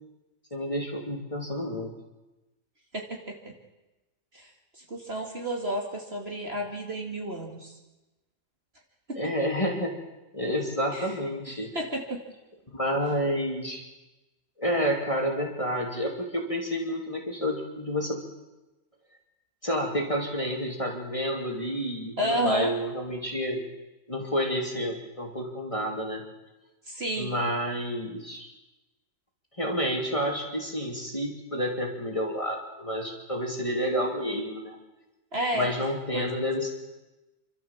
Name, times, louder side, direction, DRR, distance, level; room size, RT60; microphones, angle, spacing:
voice 1, 0.5-1.9 9.1-10.0 10.3-11.7 12.7-13.8 14.6-18.2 19.6-23.6 24.1-26.2 27.1-28.5 29.6-34.8 35.5-36.7, equal, 20° left, 0 dB, 2.9 m, -29 dB
voice 2, 2.9-3.5 4.3-4.5 4.8-7.7 9.1-9.2 10.9-11.1 11.7-12.2 22.2-22.7 26.9-27.4 35.3-35.7 36.1-36.2, equal, 35° right, 1 dB, 2.6 m, -31 dB
28.5 x 13.0 x 7.3 m, 1.1 s
omnidirectional pair, 1.7 m